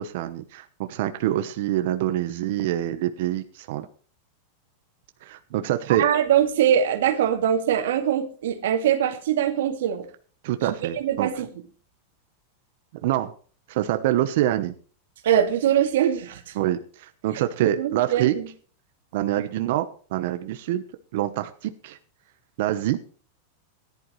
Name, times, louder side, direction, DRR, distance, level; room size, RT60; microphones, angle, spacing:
voice 1, 0.0-3.9 5.2-6.0 10.4-11.3 13.0-13.3 13.7-14.7 16.5-18.3 19.1-19.9 20.1-20.8 21.1-22.0 22.6-23.0, right 13 dB, 60° right, 9 dB, 1.0 m, -25 dB
voice 2, 5.9-10.1 10.7-11.5 15.2-16.5 17.3-17.4 17.8-18.5, right 9 dB, 80° right, 6 dB, 2.2 m, -22 dB
17.0 x 11.0 x 3.2 m, 0.42 s
supercardioid pair, 150°, 0 cm